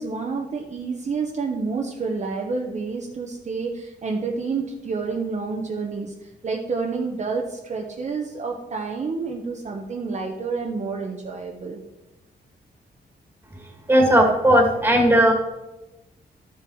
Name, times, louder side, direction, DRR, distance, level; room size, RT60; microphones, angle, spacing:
voice 1, 0.0-6.1 6.4-11.8, right 4 dB, 45° right, 0 dB, 1.1 m, -29 dB
voice 2, 13.9-15.3, right 1 dB, 10° right, 1 dB, 2.1 m, -16 dB
12.5 x 7.0 x 4.8 m, 1.0 s
wide cardioid pair, 135°, 17 cm